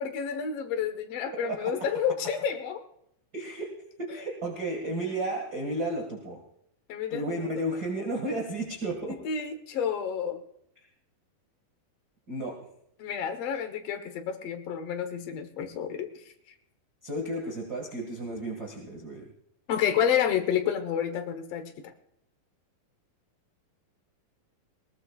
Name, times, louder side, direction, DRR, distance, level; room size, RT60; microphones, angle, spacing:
voice 1, 0.0-2.8 4.1-4.2 6.9-7.8 9.1-10.4 13.0-16.1 19.7-21.7, left 8 dB, 60° left, 6 dB, 1.9 m, -30 dB
voice 2, 3.3-3.7 4.0-6.4 7.1-9.2 12.3-12.6 17.0-19.3, right 1 dB, 35° right, 0 dB, 2.0 m, -33 dB
20.5 x 19.5 x 2.4 m, 0.74 s
omnidirectional pair, 4.1 m